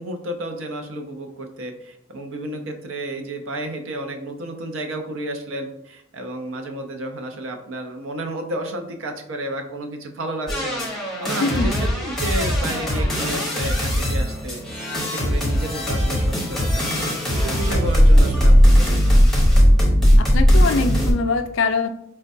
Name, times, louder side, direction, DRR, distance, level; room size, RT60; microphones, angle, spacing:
voice 1, 0.0-19.7, right 1 dB, 80° right, 4 dB, 0.6 m, -32 dB
sound 1, 10.5-21.1, equal, ahead, 0.7 m, -18 dB
voice 2, 11.4-11.7 20.2-21.9, left 4 dB, 70° left, 7 dB, 0.4 m, -23 dB
4.4 x 2.2 x 2.6 m, 0.75 s
head